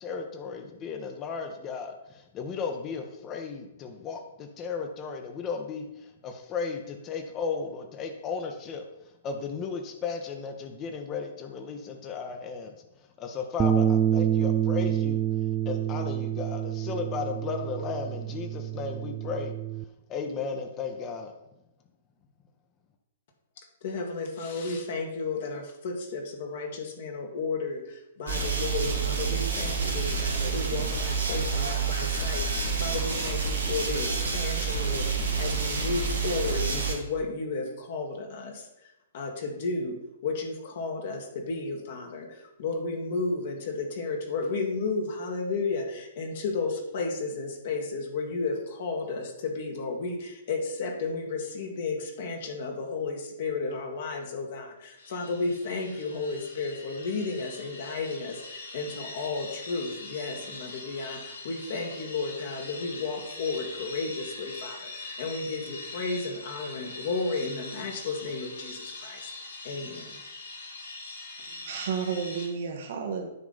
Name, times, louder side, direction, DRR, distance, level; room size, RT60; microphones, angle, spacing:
voice 1, 0.0-21.3, left 5 dB, 30° left, 4 dB, 1.1 m, -35 dB
Bass guitar, 13.6-19.8, right 10 dB, 20° right, 0.3 m, -27 dB
voice 2, 23.8-70.2, left 3 dB, 55° left, 2 dB, 1.8 m, -33 dB
sound 1, 28.3-36.9, right 5 dB, 75° right, 1.9 m, -28 dB
sound 2, 55.0-72.5, left 2 dB, 70° left, 2.3 m, -42 dB
voice 3, 71.5-73.3, right 6 dB, 55° right, 3 dB, 1.4 m, -32 dB
9.6 x 3.8 x 5.6 m, 0.89 s
figure-of-eight pair, 115°, 0 cm